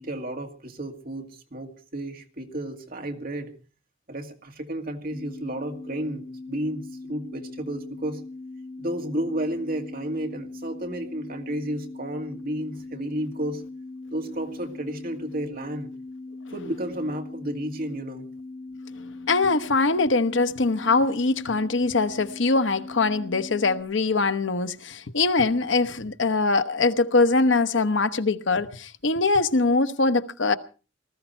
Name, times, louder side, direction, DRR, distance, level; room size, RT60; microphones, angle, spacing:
voice 1, 0.0-3.5 4.1-8.2 8.8-13.6 14.1-15.9 16.5-18.3, right 1 dB, 50° right, 2.2 m, -32 dB
sound 1, 5.1-23.8, left 2 dB, 20° left, 5.6 m, -40 dB
voice 2, 19.3-30.5, left 3 dB, 75° left, 1.0 m, -22 dB
19.5 x 14.0 x 4.4 m
head